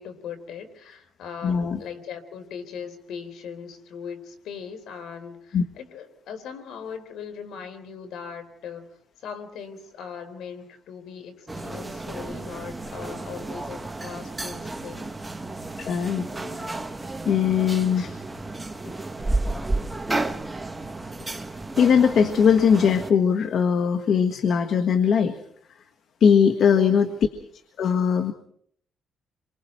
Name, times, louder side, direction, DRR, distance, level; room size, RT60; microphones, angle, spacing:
voice 1, 0.0-8.9 9.2-15.1 26.5-27.1, left 7 dB, 80° left, 10 dB, 3.7 m, -39 dB
voice 2, 1.4-1.8 5.5-5.6 15.8-16.3 17.2-18.1 18.8-18.9 21.8-25.4 26.2-27.1 27.8-28.3, left 7 dB, 65° left, 8 dB, 1.5 m, -20 dB
sound 1, 11.5-23.1, right 2 dB, 15° right, 1.4 m, -32 dB
28.0 x 23.5 x 4.5 m, 0.65 s
cardioid pair, 90°, 0 cm